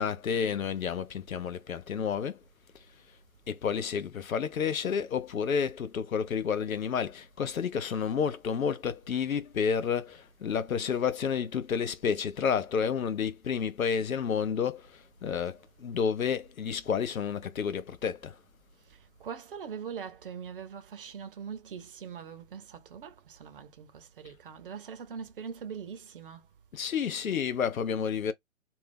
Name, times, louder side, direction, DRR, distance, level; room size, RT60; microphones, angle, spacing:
voice 1, 0.0-2.4 3.5-18.4 26.7-28.3, left 7 dB, 75° left, 0.7 m, -30 dB
voice 2, 18.9-26.4, right 7 dB, 40° right, 0.7 m, -42 dB
2.6 x 2.3 x 3.3 m
figure-of-eight pair, 135°, 42 cm